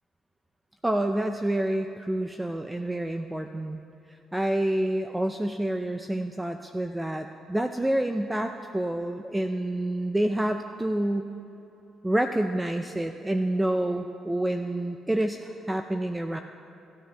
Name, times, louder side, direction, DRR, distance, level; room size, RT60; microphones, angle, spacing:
voice 1, 0.8-3.8 4.3-11.3 12.0-16.4, right 1 dB, 10° right, 6 dB, 0.5 m, -28 dB
18.5 x 12.5 x 3.4 m, 2.9 s
cardioid pair, 90°, 0 cm